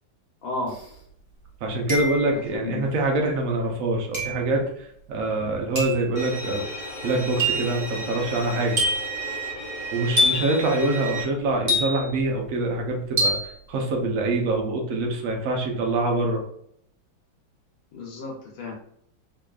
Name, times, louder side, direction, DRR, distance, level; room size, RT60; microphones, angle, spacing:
voice 1, 0.4-0.8 2.3-2.9 11.6-11.7 17.9-18.9, left 2 dB, 85° left, -2 dB, 1.6 m, -33 dB
sound 1, 0.7-0.8 1.9-2.4 4.1-4.5 5.8-6.1 7.4-7.7 8.8-9.2 10.2-10.6 11.7-12.2 13.2-13.5, equal, 20° right, 0.7 m, -24 dB
voice 2, 1.6-4.7 5.1-6.7 7.0-8.8 9.9-16.4, right 2 dB, 60° right, 1 dB, 0.9 m, -25 dB
Bowed string instrument, 6.2-11.2, right 2 dB, 65° left, 0.6 m, -34 dB
3.9 x 3.0 x 2.3 m, 0.68 s
omnidirectional pair, 2.1 m